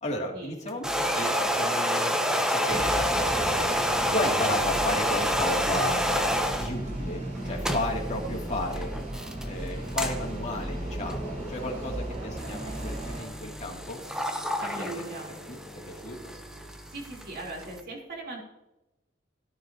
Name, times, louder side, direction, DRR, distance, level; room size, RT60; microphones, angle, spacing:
voice 1, 0.0-3.5 4.1-6.0 6.6-8.9 9.4-14.0 14.8-15.0 15.5-15.6 15.9-16.3, left 1 dB, 35° left, -1 dB, 2.8 m, -33 dB
sound 1, 0.7-6.7 7.4-17.8, equal, 5° right, 1.0 m, -29 dB
sound 2, 2.7-13.2, right 1 dB, 40° right, 4.6 m, -35 dB
voice 2, 14.6-15.3 16.9-18.4, right 2 dB, 55° right, -1 dB, 3.7 m, -39 dB
17.5 x 9.5 x 2.9 m, 0.95 s
head